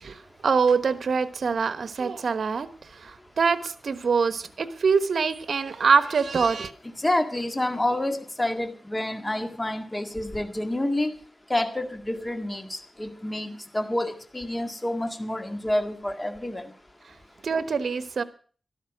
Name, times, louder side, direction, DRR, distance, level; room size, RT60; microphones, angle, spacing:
voice 1, 0.0-6.7 17.4-18.2, right 5 dB, 75° right, 12 dB, 1.2 m, -24 dB
voice 2, 7.0-11.1 11.5-16.6, left 1 dB, 20° left, 6 dB, 1.9 m, -28 dB
12.5 x 12.5 x 6.1 m, 0.42 s
wide cardioid pair, 80°, 0 cm